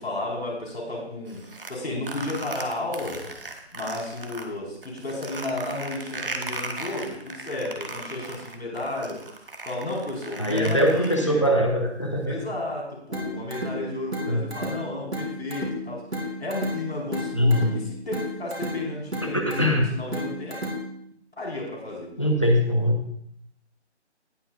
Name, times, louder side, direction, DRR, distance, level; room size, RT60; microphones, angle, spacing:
voice 1, 0.0-1.4 1.7-3.3 3.7-11.5 12.2-20.6 21.4-22.1, left 2 dB, 65° left, -2 dB, 4.8 m, -33 dB
sound 1, 1.3-4.4 4.8-11.5, right 2 dB, 50° right, 1.3 m, -37 dB
voice 2, 10.4-12.4 14.2-14.5 17.3-17.8 19.3-19.9 22.2-23.0, equal, 25° left, 2 dB, 1.0 m, -22 dB
sound 2, 13.1-21.1, equal, 75° right, 3.9 m, -33 dB
18.5 x 7.4 x 2.5 m, 0.70 s
figure-of-eight pair, 180°, 34 cm